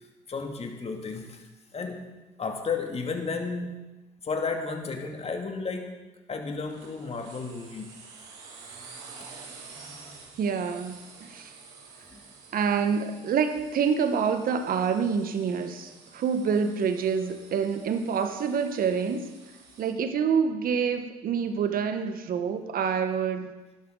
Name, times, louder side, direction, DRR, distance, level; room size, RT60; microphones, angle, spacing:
voice 1, 0.3-1.5 1.7-2.1 2.4-3.8 4.2-6.0 6.3-7.9 12.1-12.2, left 4 dB, 35° left, 3 dB, 2.6 m, -33 dB
sound 1, 6.7-19.9, right 4 dB, 75° right, 2.8 m, -49 dB
voice 2, 10.4-11.5 12.5-19.3 19.8-23.5, right 6 dB, 55° right, 8 dB, 1.5 m, -27 dB
17.0 x 12.0 x 4.1 m, 1.1 s
hypercardioid pair, 60°, 18 cm